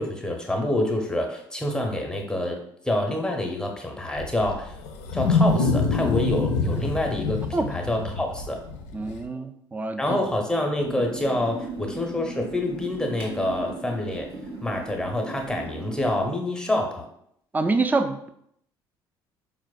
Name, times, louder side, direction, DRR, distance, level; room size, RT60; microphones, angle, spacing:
voice 1, 0.0-2.6 2.8-4.7 5.1-8.6 10.0-14.3 14.6-17.1, left 1 dB, 5° left, 2 dB, 0.7 m, -27 dB
Wild animals, 4.2-9.2, left 3 dB, 65° left, 0.4 m, -25 dB
voice 2, 8.9-10.2 17.5-18.3, right 3 dB, 15° right, 9 dB, 0.3 m, -26 dB
sound 1, 10.8-16.3, right 3 dB, 90° right, 0.7 m, -37 dB
4.4 x 2.1 x 2.3 m, 0.71 s
hypercardioid pair, 50°, 13 cm